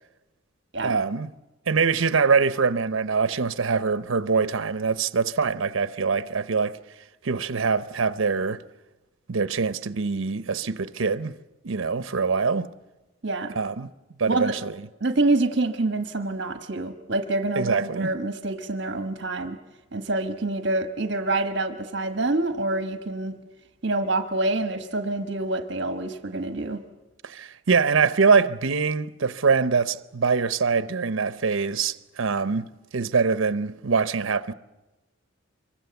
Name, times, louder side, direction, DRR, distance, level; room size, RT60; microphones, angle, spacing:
voice 1, 0.8-1.3 1.7-6.8 7.2-8.6 9.3-11.3 11.6-12.7 13.5-13.9 14.2-14.7 17.6-18.1 27.2-34.5, right 5 dB, 90° right, 0.7 m, -24 dB
voice 2, 13.2-13.5 14.3-14.5 15.0-19.6 19.9-23.3 23.8-26.8, right 2 dB, 60° right, 1.3 m, -26 dB
26.0 x 24.0 x 7.0 m
head